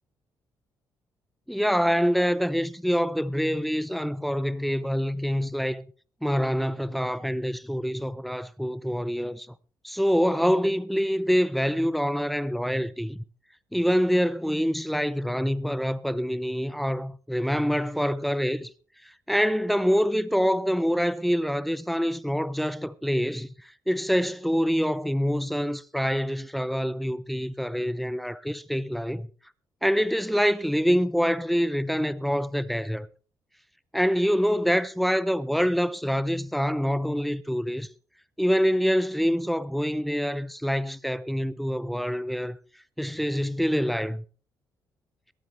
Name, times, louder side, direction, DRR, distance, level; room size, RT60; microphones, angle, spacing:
voice 1, 1.5-5.9 6.2-9.5 9.8-13.2 13.7-18.7 19.0-29.3 29.8-33.1 33.9-37.9 38.4-42.6 43.0-44.2, equal, ahead, 0.6 m, -26 dB
23.0 x 9.1 x 3.3 m
cardioid pair, 125°, 7 cm